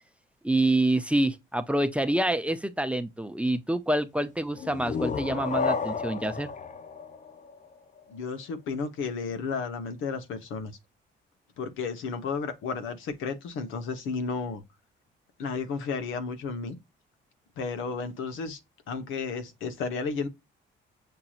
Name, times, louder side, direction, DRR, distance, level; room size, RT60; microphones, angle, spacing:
voice 1, 0.4-6.5, right 1 dB, 5° right, 0.6 m, -27 dB
sound 1, 4.5-8.1, left 5 dB, 40° left, 0.6 m, -32 dB
voice 2, 8.1-10.8 11.6-14.6 15.4-16.8 17.6-18.6 18.9-20.3, left 5 dB, 85° left, 1.1 m, -33 dB
6.7 x 2.8 x 2.5 m
cardioid pair, 90°, 20 cm